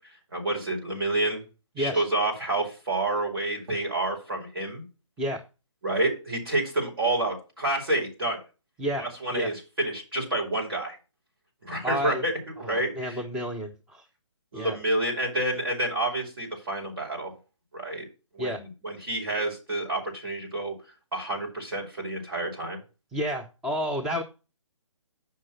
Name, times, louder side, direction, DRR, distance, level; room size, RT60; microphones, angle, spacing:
voice 1, 0.3-1.4 1.8-4.8 5.8-8.4 9.0-11.0 11.6-12.3 12.6-13.2 14.5-17.3 17.7-18.0 18.3-20.7 21.1-22.8, right 2 dB, 50° right, -1 dB, 5.4 m, -29 dB
voice 2, 11.8-12.2 12.6-14.1 14.5-14.8 18.4-18.6 23.1-24.2, equal, 5° right, -1 dB, 0.6 m, -30 dB
7.5 x 5.8 x 7.4 m, 0.31 s
figure-of-eight pair, 140°, 16 cm